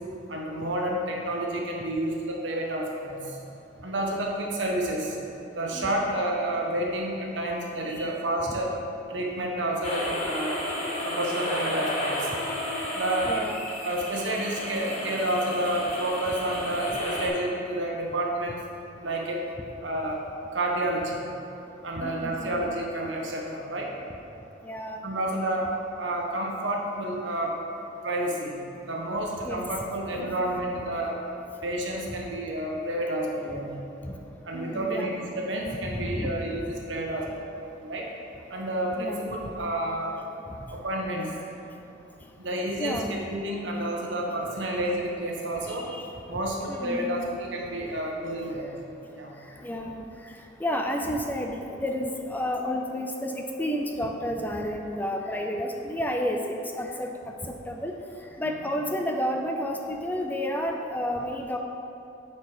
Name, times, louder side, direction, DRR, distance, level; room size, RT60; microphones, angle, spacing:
voice 1, 0.3-3.4 3.8-5.2 5.5-8.7 9.1-10.7 11.0-12.3 12.9-13.3 13.8-18.6 19.0-19.4 19.8-20.2 20.5-21.2 21.8-23.9 25.0-25.7 26.0-27.5 28.0-28.6 28.9-31.2 31.6-33.8 34.4-38.1 38.5-40.1 40.7-41.3 42.4-43.0 43.3-45.9 46.3-48.7 49.1-49.3 58.4-58.9, right 1 dB, 75° right, -1 dB, 1.3 m, -30 dB
sound 1, 9.8-17.3, left 1 dB, 35° left, 1.5 m, -32 dB
voice 2, 13.3-13.6 22.0-22.6 24.6-25.0 29.4-29.6 34.1-34.2 34.5-35.2 35.9-36.3 39.0-39.2 42.8-43.1 45.7-46.1 46.7-47.1 49.6-50.0 50.6-57.1 57.7-57.9 58.4-61.6, equal, 10° left, 2 dB, 0.4 m, -31 dB
9.5 x 4.6 x 5.0 m, 2.8 s
head